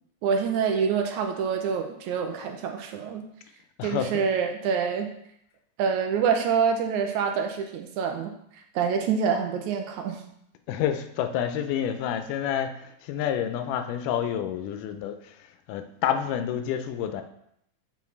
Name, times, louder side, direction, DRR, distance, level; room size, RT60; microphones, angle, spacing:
voice 1, 0.2-3.2 3.8-5.1 5.8-10.2, right 6 dB, 80° right, 4 dB, 1.8 m, -26 dB
voice 2, 3.8-4.2 10.7-15.4 15.7-17.2, left 9 dB, 85° left, 8 dB, 2.1 m, -29 dB
7.1 x 5.3 x 3.1 m, 0.74 s
omnidirectional pair, 3.6 m